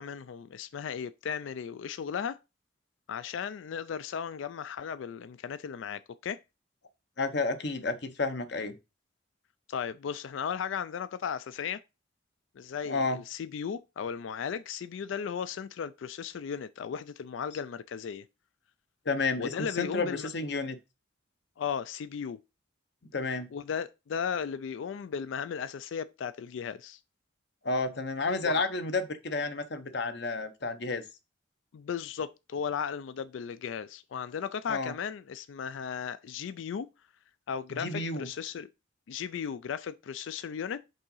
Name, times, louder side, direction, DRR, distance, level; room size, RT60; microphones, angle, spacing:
voice 1, 0.0-2.4 3.1-6.4 9.7-11.8 12.6-18.2 19.4-20.3 21.6-22.4 23.5-27.0 28.4-28.6 31.7-36.9 37.5-38.7 39.1-40.8, left 7 dB, 75° left, 0.3 m, -36 dB
voice 2, 7.2-8.8 12.9-13.2 19.1-20.8 23.1-23.5 27.6-31.0 34.7-34.9 37.7-38.3, left 3 dB, 60° left, 0.8 m, -31 dB
5.4 x 3.7 x 5.5 m
head